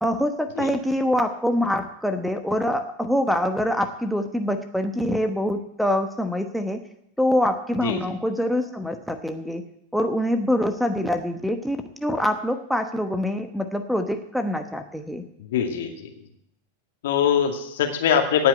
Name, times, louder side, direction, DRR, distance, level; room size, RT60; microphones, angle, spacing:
voice 1, 0.0-6.8 7.2-9.6 9.9-15.2, left 1 dB, ahead, 8 dB, 1.1 m, -25 dB
voice 2, 15.4-16.1 17.0-18.5, left 8 dB, 55° left, 3 dB, 2.3 m, -22 dB
17.5 x 6.0 x 8.9 m, 0.76 s
figure-of-eight pair, 90°, 0 cm